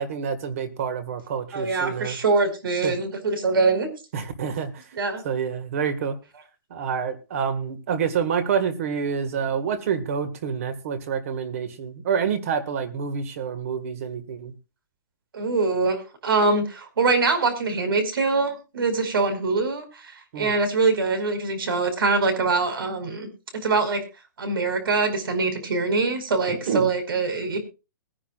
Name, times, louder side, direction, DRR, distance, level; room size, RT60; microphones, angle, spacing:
voice 1, 0.0-2.2 2.8-2.9 4.1-4.8 5.2-6.2 6.7-14.5 20.3-20.6 26.5-26.9, right 7 dB, 40° right, 11 dB, 1.8 m, -27 dB
voice 2, 1.5-3.9 5.0-5.2 15.3-23.3 23.5-24.0 24.4-27.6, right 3 dB, 80° right, 7 dB, 5.0 m, -23 dB
22.0 x 10.0 x 2.4 m, 0.30 s
hypercardioid pair, 180°, 12 cm